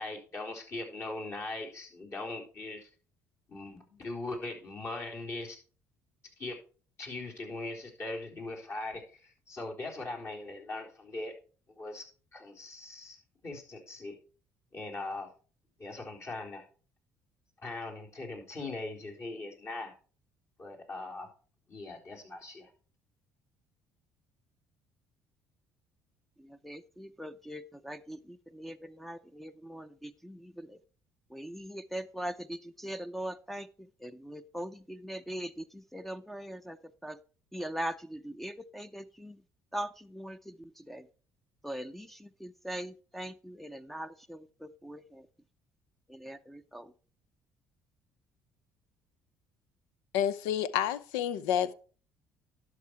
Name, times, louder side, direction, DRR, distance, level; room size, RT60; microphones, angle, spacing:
voice 1, 0.0-2.9 3.5-5.6 6.4-6.6 7.0-11.3 11.8-12.0 12.3-13.2 13.4-14.2 14.7-15.3 15.8-16.7 17.6-19.9 20.6-21.3 21.7-22.7, left 2 dB, 45° left, 4.0 m, -40 dB
voice 2, 26.4-30.8 31.3-33.7 34.0-36.8 37.0-37.2 37.5-39.4 39.7-41.0 41.6-45.3 46.1-46.9, equal, 5° left, 0.6 m, -41 dB
voice 3, 50.1-51.7, left 10 dB, 85° left, 0.6 m, -29 dB
11.5 x 6.1 x 4.6 m
supercardioid pair, 80°, 7 cm